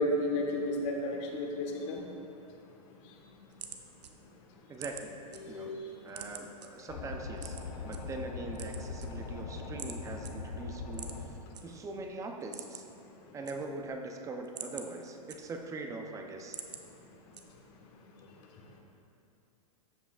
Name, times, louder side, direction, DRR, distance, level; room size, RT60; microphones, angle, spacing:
voice 1, 0.0-2.0 5.4-5.8, left 1 dB, 50° left, 0 dB, 1.4 m, -32 dB
sound 1, 3.1-5.4 5.8-6.7 7.4-8.0 8.4-9.4 9.8-10.0 10.2-10.3 10.9-11.6 12.0-12.1 12.4-13.0 13.3-13.9 14.3-15.8 16.2-16.8 17.3-17.8, right 7 dB, 85° right, 0.8 m, -45 dB
voice 2, 4.7-5.2 5.5-5.7 6.0-7.6 7.8-11.1 11.6-12.8 13.3-16.6, right 3 dB, 15° right, 4 dB, 0.6 m, -41 dB
sound 2, 6.9-11.3, left 4 dB, 80° left, 1.1 m, -41 dB
13.5 x 7.2 x 2.4 m, 2.8 s
hypercardioid pair, 130°, 20 cm